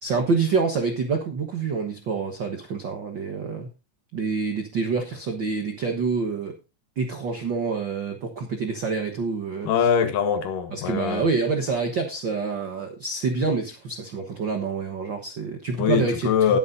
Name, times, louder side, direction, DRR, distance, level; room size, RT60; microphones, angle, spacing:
voice 1, 0.0-3.7 4.1-6.5 7.0-9.7 10.7-16.6, right 4 dB, 70° right, 1.1 m, -27 dB
voice 2, 9.6-11.2 15.8-16.6, left 7 dB, 70° left, 2.8 m, -22 dB
19.0 x 8.4 x 2.7 m
omnidirectional pair, 4.2 m